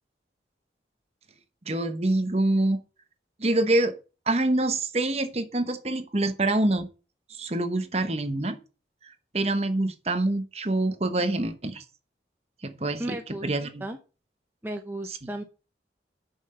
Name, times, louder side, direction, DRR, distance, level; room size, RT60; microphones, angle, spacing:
voice 1, 1.7-2.8 3.4-3.9 4.3-6.9 7.3-8.6 9.0-11.8 12.6-13.8 15.1-15.2, right 2 dB, 35° right, 1.0 m, -26 dB
voice 2, 13.0-13.5 13.8-14.0 14.6-15.4, right 1 dB, 10° right, 0.7 m, -34 dB
7.0 x 5.7 x 6.9 m
head